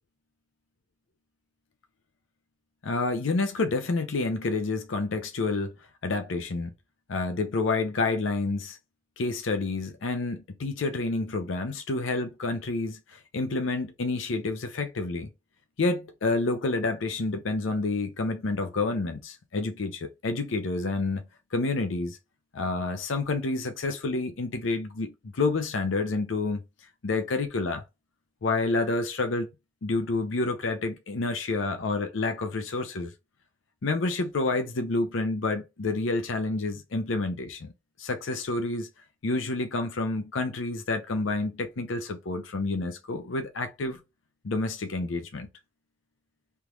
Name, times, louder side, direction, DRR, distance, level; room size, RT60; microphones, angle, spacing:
voice 1, 2.8-5.8 6.0-6.7 7.1-8.8 9.2-15.3 15.8-22.2 22.5-26.6 27.0-27.8 28.4-29.5 29.8-33.1 33.8-37.7 38.0-38.9 39.2-44.0 44.4-45.5, left 3 dB, 75° left, 0.6 m, -29 dB
3.5 x 3.0 x 2.3 m
head